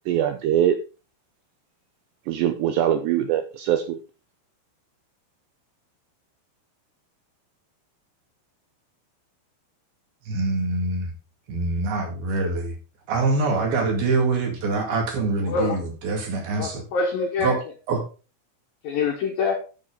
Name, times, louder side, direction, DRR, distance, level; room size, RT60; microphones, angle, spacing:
voice 1, 0.1-0.8 2.3-4.0, right 10 dB, 85° right, 7 dB, 2.5 m, -22 dB
voice 2, 10.3-11.1 11.5-12.8 13.1-16.9 17.4-17.6 17.9-18.0, right 3 dB, 55° right, 2 dB, 3.6 m, -24 dB
voice 3, 15.4-15.8 16.6-17.7 18.8-19.6, left 4 dB, 75° left, 1 dB, 2.1 m, -25 dB
12.0 x 6.7 x 3.9 m, 0.34 s
omnidirectional pair, 5.8 m